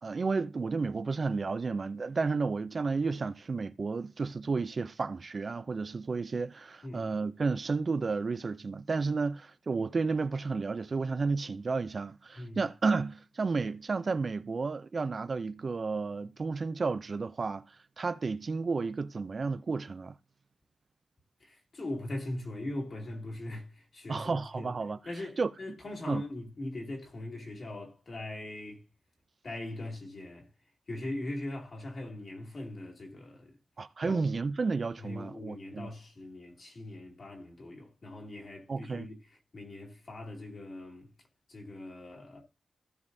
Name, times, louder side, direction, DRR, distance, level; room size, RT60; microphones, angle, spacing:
voice 1, 0.0-20.2 24.1-25.0 25.4-25.5 26.1-26.2 33.8-35.9 38.7-39.1, right 4 dB, 45° right, 0.4 m, -32 dB
voice 2, 6.8-7.1 12.4-12.6 21.4-24.7 25.0-28.8 29.4-30.5 30.9-33.6 34.0-34.2 35.0-39.2 39.5-41.1 41.5-42.4, left 1 dB, 45° left, 2.5 m, -40 dB
16.0 x 5.4 x 2.7 m
wide cardioid pair, 110°, 0 cm